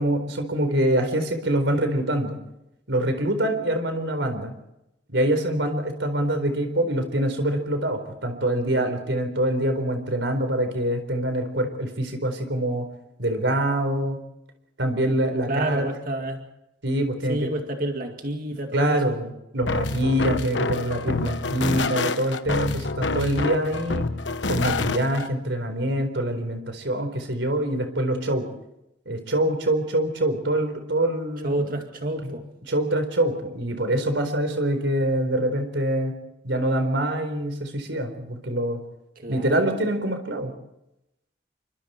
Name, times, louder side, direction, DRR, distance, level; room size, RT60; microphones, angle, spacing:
voice 1, 0.0-2.4 2.9-4.6 5.1-12.9 13.2-14.2 14.8-15.9 16.8-17.5 18.7-24.1 24.5-28.5 29.1-31.7 32.2-32.3 32.7-36.1 36.4-38.8 39.3-40.5, right 1 dB, 85° right, 7 dB, 4.2 m, -25 dB
voice 2, 15.5-16.4 17.3-19.1 31.4-32.4 39.2-39.7, right 1 dB, 50° right, 4 dB, 2.3 m, -29 dB
sound 1, 19.6-25.3, left 3 dB, 85° left, 1.1 m, -27 dB
28.5 x 24.5 x 4.5 m, 0.85 s
head